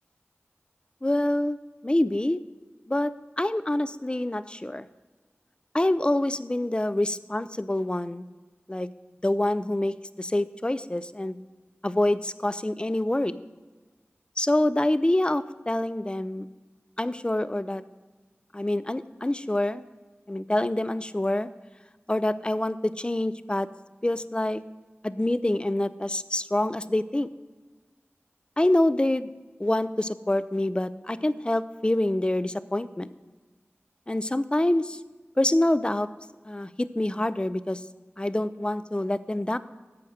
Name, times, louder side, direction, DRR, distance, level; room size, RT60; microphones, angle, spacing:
voice 1, 1.0-1.6 1.8-2.4 2.9-4.9 5.7-8.2 8.7-8.9 9.2-11.4 11.8-13.4 14.4-16.5 17.0-17.8 18.5-19.9 20.3-21.5 22.1-23.7 24.0-24.6 25.0-27.3 28.6-29.3 29.6-33.1 34.1-35.0 35.4-36.1 36.5-37.8 38.2-39.6, left 1 dB, 20° left, 15 dB, 0.4 m, -26 dB
11.5 x 7.6 x 5.0 m, 1.3 s
wide cardioid pair, 50°, 5 cm